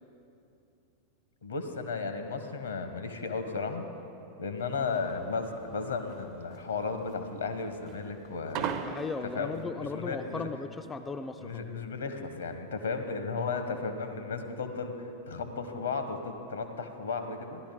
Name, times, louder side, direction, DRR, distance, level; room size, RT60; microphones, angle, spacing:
voice 1, 1.4-3.8 4.4-8.7 9.3-10.5 11.4-17.6, left 4 dB, 70° left, 7 dB, 0.9 m, -34 dB
sound 1, 4.6-9.6, right 7 dB, 40° right, 0.6 m, -38 dB
voice 2, 8.8-11.6, left 4 dB, 15° left, 7 dB, 0.3 m, -37 dB
15.0 x 11.5 x 3.8 m, 2.7 s
figure-of-eight pair, 90°, 0 cm